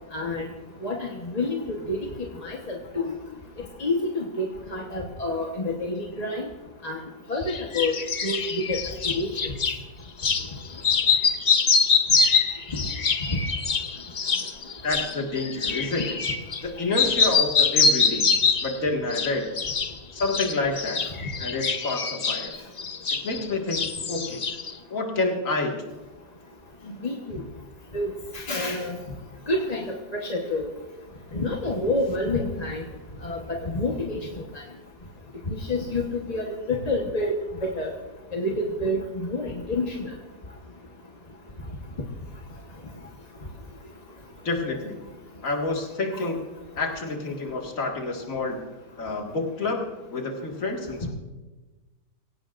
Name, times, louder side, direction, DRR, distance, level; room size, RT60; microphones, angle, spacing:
voice 1, 0.1-0.4 0.8-2.0 2.4-3.1 3.8-6.5 6.8-7.0 7.3-7.9 8.2-8.8 9.0-9.5 13.3-13.4 26.9-27.4 27.9-29.0 29.5-30.7 31.3-32.8 33.2-34.2 35.7-37.3 37.6-37.9 38.3-40.1, left 2 dB, 25° left, -1 dB, 1.1 m, -28 dB
sound 1, 7.5-9.8 10.2-10.5 10.8-16.7 16.9-18.8 19.1-19.9 20.2-23.5 23.7-24.7, left 5 dB, 65° left, 0.4 m, -24 dB
voice 2, 14.8-16.2 16.6-18.3 18.6-19.5 20.1-21.0 21.4-22.6 23.2-23.8 24.1-24.4 24.9-25.7 44.4-45.0 45.4-46.4 46.8-48.6 49.0-51.1, left 2 dB, 50° left, 1 dB, 2.3 m, -28 dB
23.5 x 17.0 x 2.5 m, 1.2 s
omnidirectional pair, 1.8 m